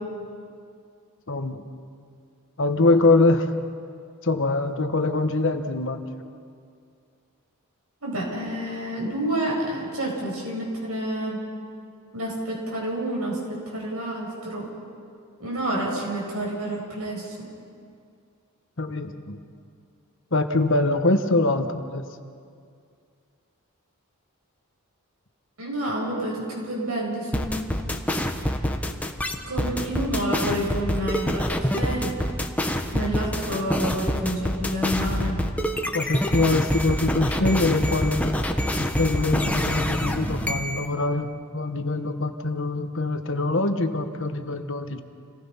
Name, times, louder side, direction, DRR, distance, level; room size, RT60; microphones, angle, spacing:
voice 1, 1.3-1.6 2.6-3.5 4.2-6.1 18.8-19.4 20.3-22.0 35.9-38.4 38.8-45.0, left 2 dB, 60° left, 7 dB, 1.3 m, -23 dB
voice 2, 8.0-11.5 12.1-14.7 15.4-17.5 25.6-27.7 29.4-32.2 32.9-35.4, right 1 dB, 75° right, -2 dB, 7.9 m, -29 dB
sound 1, 27.3-40.8, equal, 5° left, 1.2 m, -26 dB
29.0 x 19.0 x 5.8 m, 2.3 s
head